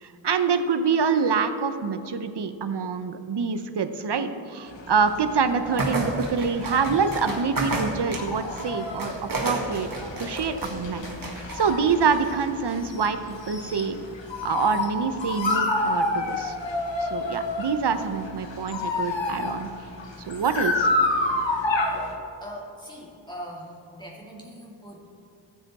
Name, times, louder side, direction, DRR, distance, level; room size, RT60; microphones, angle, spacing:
voice 1, 0.0-9.1 9.4-9.9 10.2-14.0 14.4-16.6 17.0-19.7 20.2-20.9, right 5 dB, 65° right, 9 dB, 0.8 m, -26 dB
sound 1, 4.7-22.1, left 2 dB, 80° left, 1.4 m, -29 dB
sound 2, 5.7-11.9, right 2 dB, 50° right, 1.8 m, -32 dB
voice 2, 22.4-25.1, equal, 10° left, -4 dB, 2.3 m, -41 dB
14.0 x 7.8 x 4.2 m, 2.7 s
wide cardioid pair, 65°, 45 cm